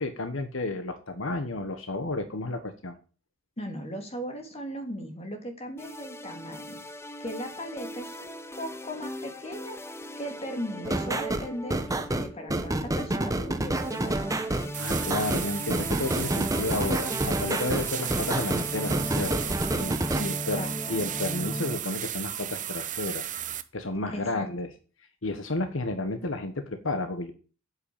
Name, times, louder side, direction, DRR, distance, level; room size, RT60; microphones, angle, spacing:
voice 1, 0.0-3.0 14.8-23.3 23.7-24.7 25.2-27.3, left 2 dB, 70° left, 8 dB, 1.3 m, -32 dB
voice 2, 3.6-6.8 7.2-9.8 10.2-11.8 12.2-14.4 20.1-21.1 24.1-24.4, equal, 30° left, 3 dB, 3.0 m, -38 dB
sound 1, 5.8-21.8, equal, 15° left, 0.8 m, -39 dB
sound 2, 10.8-20.2, right 1 dB, 15° right, 1.0 m, -28 dB
sound 3, 14.7-23.6, right 11 dB, 40° right, 0.9 m, -34 dB
8.2 x 8.0 x 8.8 m, 0.38 s
head